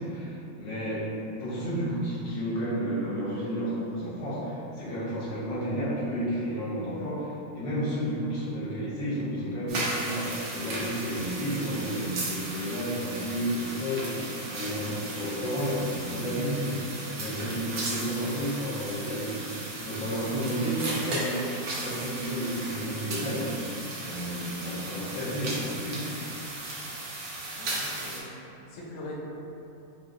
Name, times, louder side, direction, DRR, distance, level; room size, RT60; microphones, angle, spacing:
voice 1, 0.0-21.4 21.8-26.1, equal, 80° left, -8 dB, 1.6 m, -31 dB
sound 1, 9.7-28.2, right 2 dB, 60° right, 1.1 m, -36 dB
voice 2, 27.5-29.1, left 1 dB, 65° left, -5 dB, 0.8 m, -43 dB
4.8 x 2.8 x 2.5 m, 2.8 s
omnidirectional pair, 2.0 m